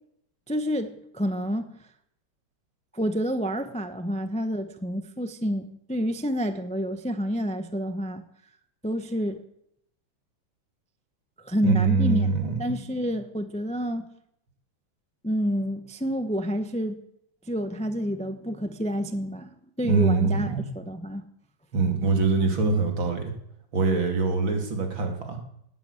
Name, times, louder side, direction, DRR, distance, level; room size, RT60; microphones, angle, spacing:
voice 1, 0.5-1.7 2.9-8.2 8.8-9.4 11.4-14.1 15.2-17.0 17.5-19.5 19.8-21.2, equal, 5° left, 8 dB, 0.6 m, -29 dB
voice 2, 11.6-12.7 19.8-20.7 21.7-23.3 23.7-25.4, right 4 dB, 75° right, 4 dB, 3.2 m, -24 dB
18.5 x 9.2 x 8.4 m, 0.75 s
omnidirectional pair, 2.2 m